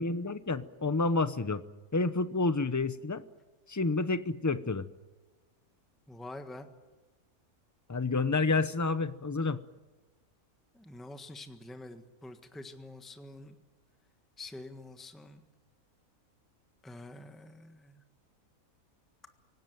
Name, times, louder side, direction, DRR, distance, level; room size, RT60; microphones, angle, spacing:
voice 1, 0.0-1.6 1.9-3.2 3.7-4.9 7.9-9.6, left 3 dB, 20° left, 13 dB, 0.6 m, -29 dB
voice 2, 6.1-6.7 10.7-13.6 14.4-15.4 16.8-18.0, left 2 dB, ahead, 7 dB, 1.4 m, -47 dB
25.5 x 18.0 x 9.2 m, 1.3 s
omnidirectional pair, 1.6 m